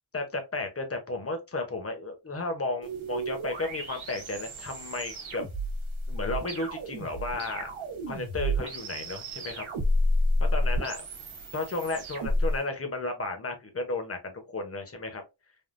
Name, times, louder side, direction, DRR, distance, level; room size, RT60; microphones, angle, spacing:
voice 1, 0.1-5.4 6.1-7.7 8.1-9.6 10.4-11.0 11.5-15.2, left 2 dB, 30° left, 0.8 m, -33 dB
sound 1, 2.8-12.6, equal, 75° right, 1.0 m, -30 dB
3.5 x 2.1 x 2.5 m
wide cardioid pair, 105°, 48 cm